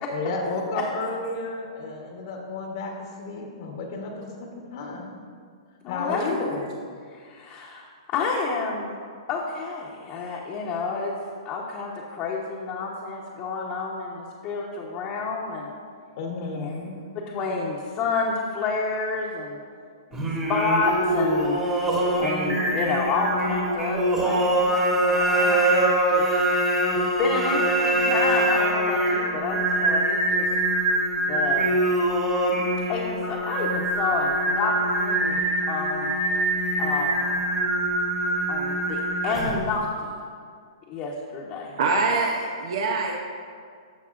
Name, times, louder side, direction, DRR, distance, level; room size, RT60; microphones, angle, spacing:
voice 1, 0.1-5.1 5.9-6.6 16.2-17.0, left 3 dB, 55° left, 1 dB, 1.2 m, -32 dB
voice 2, 5.8-6.6 7.1-9.0 9.3-11.1 11.4-15.7 16.5-16.9 17.1-19.6 20.1-21.6 22.2-26.2 26.9-30.5 31.2-31.8 32.9-36.1 36.8-37.4 38.5-40.1 40.9-42.2, left 4 dB, 35° left, -4 dB, 1.0 m, -29 dB
Singing, 20.1-39.7, right 1 dB, 15° right, 1.5 m, -24 dB
voice 3, 41.8-43.1, right 4 dB, 65° right, 0 dB, 0.8 m, -24 dB
15.0 x 5.3 x 2.6 m, 2.1 s
hypercardioid pair, 135°, 3 cm